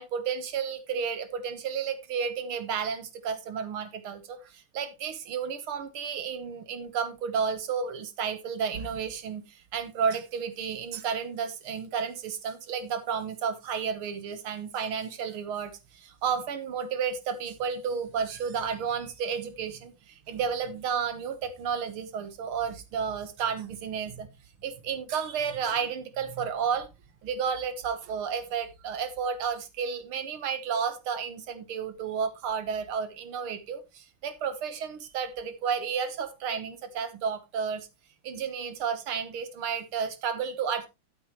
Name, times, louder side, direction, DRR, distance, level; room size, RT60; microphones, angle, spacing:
voice 1, 0.0-24.3 24.6-26.9 27.2-37.9 38.2-40.9, right 6 dB, 85° right, 10 dB, 2.2 m, -32 dB
13.0 x 7.9 x 3.1 m, 0.25 s
omnidirectional pair, 2.3 m